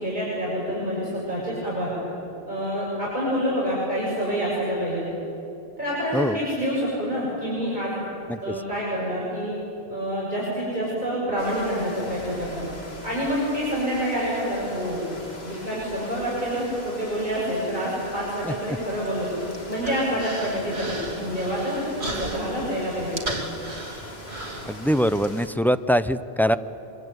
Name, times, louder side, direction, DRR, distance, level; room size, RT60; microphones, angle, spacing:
voice 1, 0.0-1.9 2.5-5.0 5.8-7.9 8.4-9.5 9.9-12.7 13.0-15.1 15.4-19.3 19.7-23.2, equal, 45° right, -7 dB, 6.8 m, -27 dB
sound 1, 11.4-25.5, left 1 dB, 75° left, 3.3 m, -42 dB
Human voice, 19.0-25.3, right 2 dB, 80° right, 3.2 m, -36 dB
voice 2, 24.7-26.6, equal, 5° left, 12 dB, 0.4 m, -23 dB
25.0 x 24.5 x 9.5 m, 2.8 s
omnidirectional pair, 1.1 m